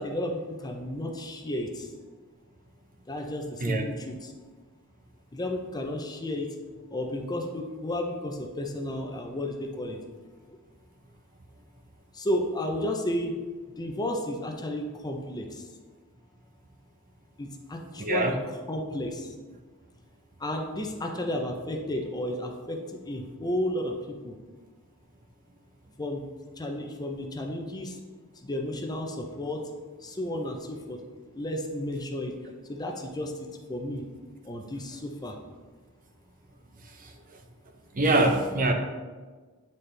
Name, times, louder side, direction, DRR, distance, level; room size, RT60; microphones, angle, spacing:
voice 1, 0.0-1.9 3.1-4.3 5.3-6.5 6.9-10.0 10.5-10.6 12.1-13.3 13.8-15.7 17.4-19.3 20.4-22.8 23.0-24.4 26.0-26.2 26.6-28.0 28.4-29.6 30.0-31.0 31.3-32.3 32.7-34.0 34.4-35.4, left 1 dB, 20° left, 3 dB, 0.6 m, -32 dB
voice 2, 18.0-18.4 38.0-38.7, right 2 dB, 40° right, 4 dB, 0.7 m, -23 dB
9.2 x 4.1 x 3.3 m, 1.4 s
head